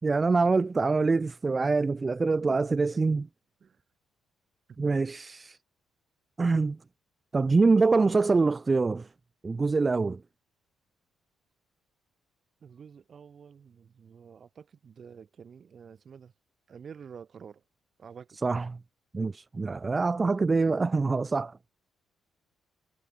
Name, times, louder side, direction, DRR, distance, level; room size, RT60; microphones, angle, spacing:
voice 1, 0.0-3.3 4.8-5.6 6.4-6.8 7.3-9.1 9.4-10.2 18.4-18.8 19.1-21.6, right 3 dB, 25° right, 0.5 m, -25 dB
voice 2, 12.6-16.3 16.7-17.6 18.0-18.4 19.9-20.2 20.8-21.1, right 7 dB, 50° right, 4.8 m, -49 dB
cardioid pair, 90°, 0 cm